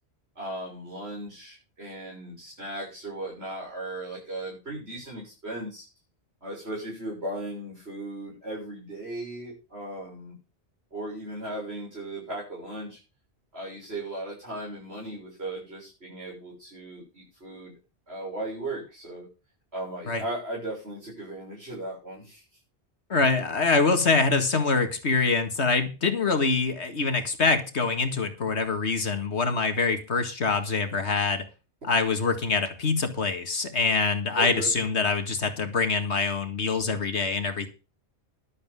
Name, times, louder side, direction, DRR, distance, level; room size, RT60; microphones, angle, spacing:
voice 1, 0.4-5.9 6.4-10.4 10.9-13.0 13.5-17.7 18.1-19.3 19.7-22.4 34.4-34.7, right 1 dB, 70° right, -6 dB, 7.1 m, -37 dB
voice 2, 23.1-31.5 31.8-37.7, left 4 dB, 80° left, 7 dB, 2.1 m, -25 dB
13.0 x 12.0 x 3.7 m, 0.32 s
omnidirectional pair, 1.1 m